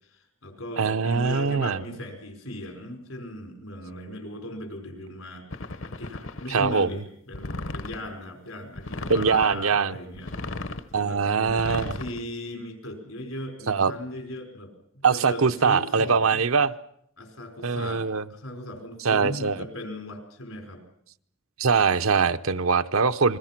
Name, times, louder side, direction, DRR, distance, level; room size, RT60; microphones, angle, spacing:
voice 1, 0.0-10.4 10.9-14.7 15.1-16.4 17.2-20.8, left 1 dB, 90° left, 5 dB, 5.2 m, -37 dB
voice 2, 0.8-1.8 6.5-6.9 9.1-9.9 10.9-11.9 13.7-13.9 15.0-16.7 17.6-18.2 19.0-19.7 21.6-23.4, right 5 dB, 85° right, 11 dB, 0.9 m, -22 dB
sound 1, 5.5-6.7 7.3-8.1 8.7-9.5 10.1-10.9 11.5-12.2, left 2 dB, 70° left, 1.0 m, -35 dB
28.5 x 21.5 x 6.0 m, 0.70 s
head